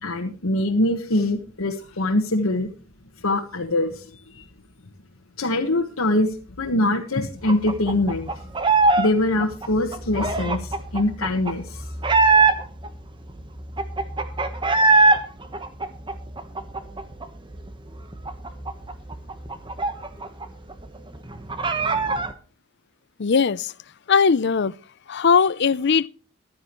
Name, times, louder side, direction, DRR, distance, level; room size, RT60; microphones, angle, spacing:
voice 1, 0.0-2.7 3.2-4.0 4.3-4.4 5.4-8.3 9.0-11.8, left 1 dB, 90° left, 1.4 m, -23 dB
sound 1, 7.5-9.1 9.3-12.9 13.3-13.4 13.6-15.2 15.5-17.2 17.6-17.7 18.0-20.4 20.7-20.8 21.1-22.3, right 3 dB, 25° right, 1.2 m, -21 dB
voice 2, 23.2-23.7 24.1-24.7 25.1-26.1, left 5 dB, 55° left, 0.5 m, -19 dB
15.0 x 12.0 x 3.1 m
head